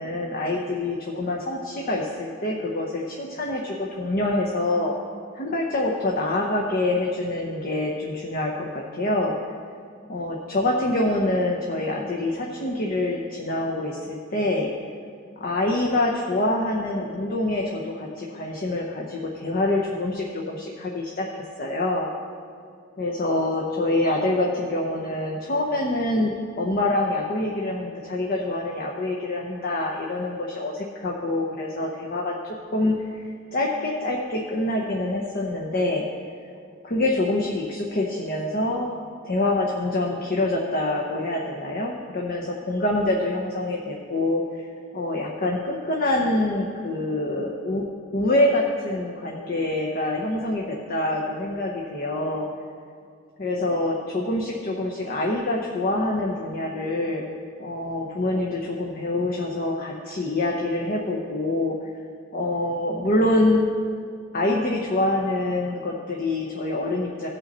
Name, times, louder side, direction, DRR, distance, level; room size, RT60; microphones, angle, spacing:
voice 1, 0.0-4.9 5.3-9.4 10.1-14.7 15.4-21.3 21.6-22.1 23.0-32.3 32.7-36.0 36.8-38.9 39.2-44.4 44.9-47.8 48.1-52.5 53.4-57.3 57.6-61.8 62.3-63.7 64.3-67.3, left 2 dB, 45° left, -1 dB, 0.9 m, -25 dB
16.5 x 5.5 x 4.2 m, 2.3 s
head